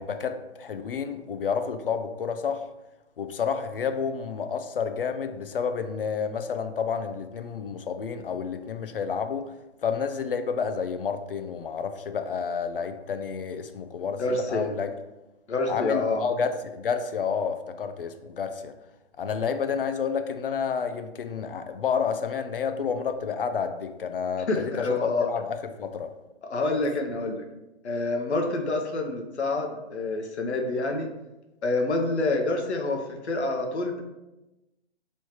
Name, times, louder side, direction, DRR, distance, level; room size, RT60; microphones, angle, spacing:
voice 1, 0.0-2.6 3.2-9.5 9.8-14.9 15.7-18.7 19.2-24.9 25.2-26.1, left 6 dB, 55° left, 9 dB, 0.4 m, -30 dB
voice 2, 14.2-14.7 15.5-16.3 24.5-25.3 26.5-27.4 27.8-31.1 31.6-34.0, left 2 dB, 75° left, 3 dB, 0.8 m, -27 dB
3.2 x 2.9 x 4.6 m, 1.0 s
hypercardioid pair, 170°, 34 cm